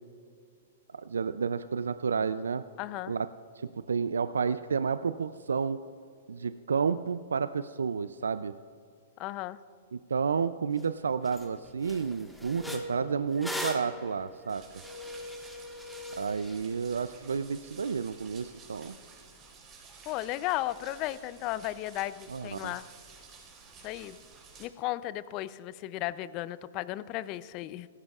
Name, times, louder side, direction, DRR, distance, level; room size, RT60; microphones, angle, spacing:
voice 1, 0.9-2.6 3.1-3.3 3.6-5.8 6.3-8.5 9.9-14.6 16.1-19.0 22.3-22.7, right 6 dB, 90° right, 13 dB, 0.3 m, -31 dB
voice 2, 2.8-3.2 9.2-9.6 20.1-22.9 23.8-24.2 24.6-27.9, left 15 dB, 40° left, 16 dB, 0.5 m, -35 dB
sound 1, 10.8-10.9 11.3-11.5 11.8-16.6, left 1 dB, 5° left, 1.4 m, -40 dB
sound 2, 14.5-24.7, right 5 dB, 30° right, 3.6 m, -53 dB
17.5 x 14.5 x 2.4 m, 2.3 s
hypercardioid pair, 125°, 0 cm